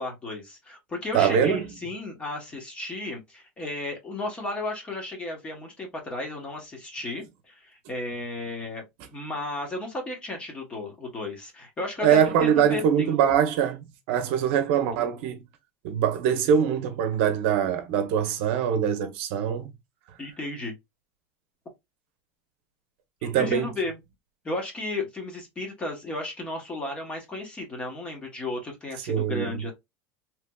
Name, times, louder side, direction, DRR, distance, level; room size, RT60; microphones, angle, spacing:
voice 1, 0.0-8.8 9.1-13.1 20.2-20.7 23.2-24.0 24.4-29.7, left 2 dB, 15° left, 1.0 m, -34 dB
voice 2, 1.1-1.6 12.0-15.4 15.8-19.7 23.2-23.7 29.1-29.5, right 8 dB, 60° right, 0.7 m, -23 dB
3.3 x 3.0 x 2.2 m
supercardioid pair, 165°, 7 cm